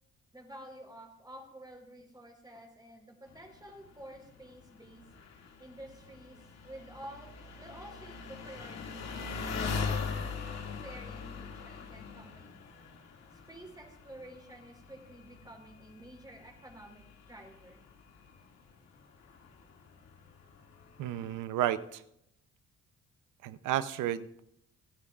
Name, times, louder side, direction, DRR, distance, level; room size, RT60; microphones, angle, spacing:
voice 1, 0.3-5.0 5.6-9.3 9.7-10.1 10.8-12.6 13.3-17.8, right 1 dB, 15° right, 2 dB, 4.1 m, -50 dB
Engine, 3.3-21.4, left 5 dB, 60° left, 2.3 m, -42 dB
voice 2, 21.0-22.0 23.4-24.4, right 12 dB, 90° right, 13 dB, 0.7 m, -32 dB
28.5 x 10.0 x 2.5 m, 0.78 s
cardioid pair, 90°, 30 cm